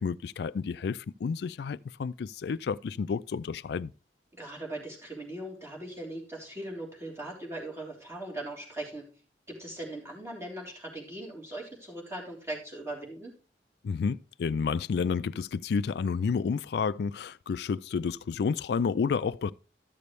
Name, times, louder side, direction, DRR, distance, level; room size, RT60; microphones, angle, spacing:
voice 1, 0.0-3.9 13.8-19.5, left 5 dB, 65° left, 0.3 m, -30 dB
voice 2, 4.4-9.0 9.5-13.3, right 1 dB, 15° right, 3.2 m, -39 dB
13.0 x 6.8 x 3.2 m
head